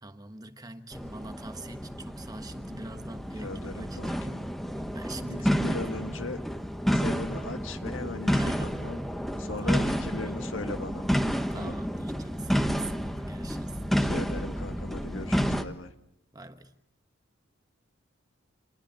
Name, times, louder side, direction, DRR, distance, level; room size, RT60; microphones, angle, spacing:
voice 1, 0.0-4.4 4.7-5.8 8.3-8.8 9.6-10.3 11.5-13.8 16.3-16.7, right 2 dB, 20° right, 1.2 m, -44 dB
sound 1, 0.9-15.6, equal, ahead, 1.1 m, -30 dB
voice 2, 3.4-4.4 5.2-6.4 6.9-9.0 9.4-11.0 11.5-11.8 14.0-15.9, left 3 dB, 75° left, 1.7 m, -39 dB
28.0 x 21.0 x 7.9 m
head